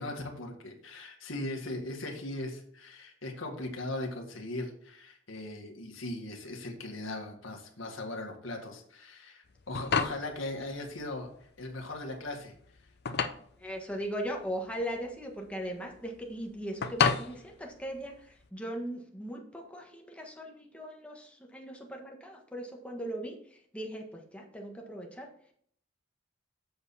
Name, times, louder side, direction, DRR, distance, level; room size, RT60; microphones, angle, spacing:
voice 1, 0.0-12.5 12.8-12.9, left 2 dB, 75° left, 2 dB, 1.9 m, -39 dB
sound 1, 9.5-18.5, left 6 dB, 55° left, 0.7 m, -34 dB
voice 2, 13.6-25.3, equal, 5° left, 1 dB, 1.5 m, -39 dB
7.8 x 7.1 x 4.2 m, 0.62 s
head